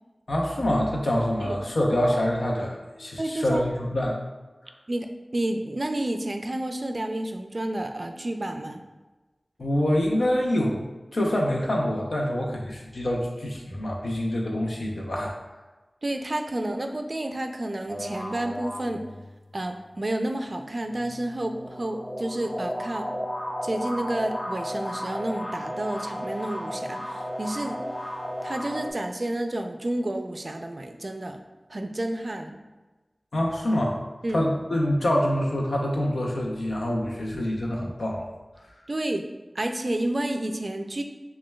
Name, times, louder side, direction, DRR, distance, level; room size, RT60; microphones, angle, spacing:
voice 1, 0.3-4.2 9.6-10.8 11.1-15.4 33.3-34.0 34.3-38.3, left 1 dB, 90° left, -1 dB, 0.6 m, -26 dB
voice 2, 3.2-3.6 4.9-5.1 5.3-8.8 16.0-19.1 19.5-23.1 23.6-27.8 28.4-31.4 31.7-32.6 34.2-34.4 38.9-39.3 39.5-41.0, right 1 dB, 55° right, 6 dB, 0.3 m, -30 dB
sound 1, 17.9-19.5 20.9-28.9, equal, 20° left, 0.5 m, -34 dB
6.1 x 2.2 x 2.2 m, 1.2 s
wide cardioid pair, 55°, 0 cm